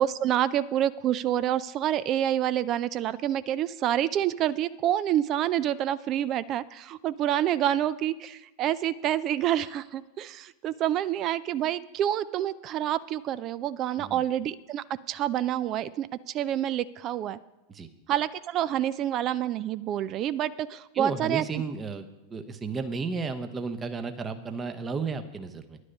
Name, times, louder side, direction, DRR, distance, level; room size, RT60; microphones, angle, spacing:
voice 1, 0.0-17.4 18.1-21.6, right 11 dB, 35° right, 17 dB, 0.4 m, -28 dB
voice 2, 20.9-22.0 22.3-25.8, right 4 dB, 20° right, 9 dB, 0.9 m, -33 dB
11.0 x 9.7 x 5.3 m, 1.0 s
figure-of-eight pair, 90°, 0 cm